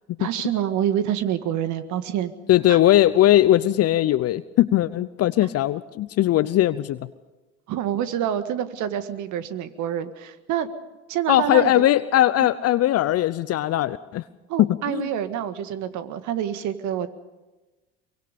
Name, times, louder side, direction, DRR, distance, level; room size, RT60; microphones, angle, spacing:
voice 1, 0.2-2.3 2.7-2.8 7.7-10.7 11.1-11.7 12.4-12.5 14.5-17.1, right 10 dB, 60° right, 10 dB, 1.8 m, -27 dB
voice 2, 2.5-7.0 11.3-14.2 14.6-15.1, left 13 dB, 45° left, 14 dB, 0.8 m, -19 dB
24.0 x 23.0 x 5.3 m, 1.1 s
hypercardioid pair, 70°, 34 cm